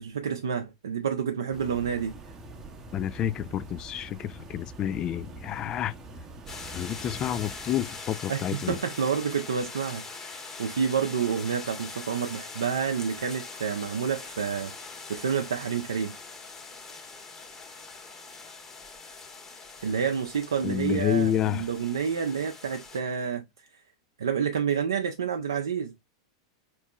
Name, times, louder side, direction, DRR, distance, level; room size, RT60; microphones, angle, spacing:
voice 1, 0.0-2.1 8.3-16.1 19.8-23.4 23.7-23.8 24.2-25.9, right 7 dB, 75° right, 0.5 m, -29 dB
sound 1, 1.5-8.3, right 2 dB, 25° right, 0.7 m, -45 dB
voice 2, 2.9-5.9 6.7-8.8 20.6-21.6, left 10 dB, 35° left, 0.4 m, -29 dB
sound 2, 6.5-23.0, left 4 dB, 20° left, 1.4 m, -42 dB
4.3 x 3.0 x 2.3 m
hypercardioid pair, 95°, 2 cm